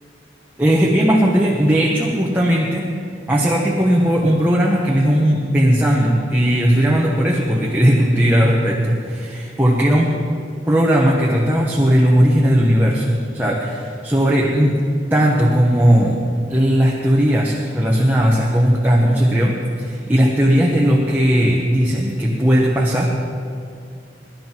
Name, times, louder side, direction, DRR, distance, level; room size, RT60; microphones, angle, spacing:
voice 1, 0.6-2.9 3.3-10.2 10.7-14.8 15.1-16.2 16.5-23.1, equal, 10° right, -3 dB, 1.4 m, -17 dB
23.0 x 12.0 x 4.6 m, 2.4 s
head